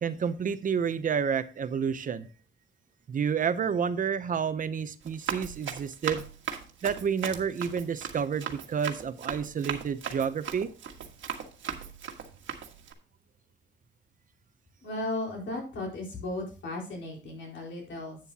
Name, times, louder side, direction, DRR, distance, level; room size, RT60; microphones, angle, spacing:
voice 1, 0.0-2.3 3.1-6.2 6.8-10.7, right 7 dB, 45° right, 12 dB, 0.7 m, -29 dB
Run, 5.0-12.9, right 8 dB, 85° right, 1.6 m, -38 dB
voice 2, 14.8-18.2, left 2 dB, 80° left, -1 dB, 4.5 m, -35 dB
11.0 x 8.9 x 2.8 m, 0.36 s
wide cardioid pair, 180°, 19 cm